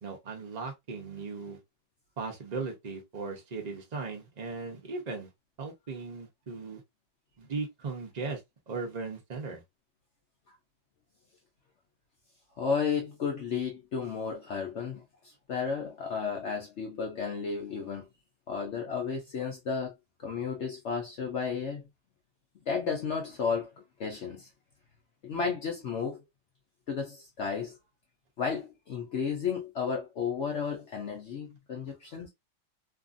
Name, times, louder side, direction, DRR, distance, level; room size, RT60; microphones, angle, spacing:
voice 1, 0.0-1.6 2.2-5.3 5.6-6.8 7.4-9.6, right 4 dB, 85° right, 0.3 m, -37 dB
voice 2, 12.6-18.1 18.5-19.9 20.2-21.9 22.7-23.7 24.0-24.5 25.2-26.2 26.9-27.8 28.4-32.3, left 6 dB, 70° left, 0.6 m, -33 dB
2.8 x 2.5 x 2.4 m
omnidirectional pair, 1.9 m